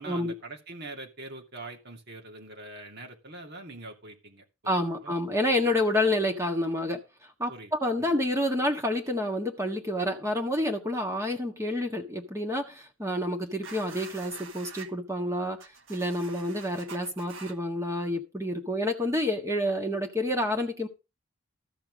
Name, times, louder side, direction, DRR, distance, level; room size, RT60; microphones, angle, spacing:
voice 1, 0.0-4.4 4.7-5.1 7.5-7.7 8.0-8.1, right 2 dB, 50° right, 2.7 m, -43 dB
voice 2, 4.6-7.0 7.4-15.6 15.9-20.9, left 1 dB, 15° right, 1.5 m, -28 dB
sound 1, 13.6-14.9 15.6-17.6, right 5 dB, 70° right, 1.7 m, -46 dB
13.5 x 6.1 x 6.2 m
head